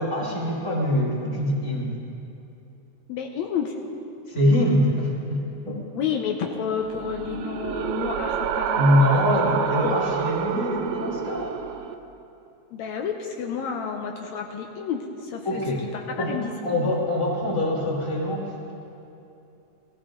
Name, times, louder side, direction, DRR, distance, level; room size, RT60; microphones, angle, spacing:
voice 1, 0.0-1.9 4.3-5.8 8.8-11.6 15.4-15.8 16.2-18.7, left 1 dB, 10° left, -6 dB, 2.5 m, -24 dB
voice 2, 3.1-3.8 5.9-9.2 9.8-10.0 12.7-15.6 15.9-16.5 16.8-16.9, left 7 dB, 75° left, 2 dB, 2.0 m, -30 dB
sound 1, 6.8-12.0, right 8 dB, 80° right, 2.0 m, -28 dB
20.5 x 15.0 x 3.8 m, 2.8 s
omnidirectional pair, 3.4 m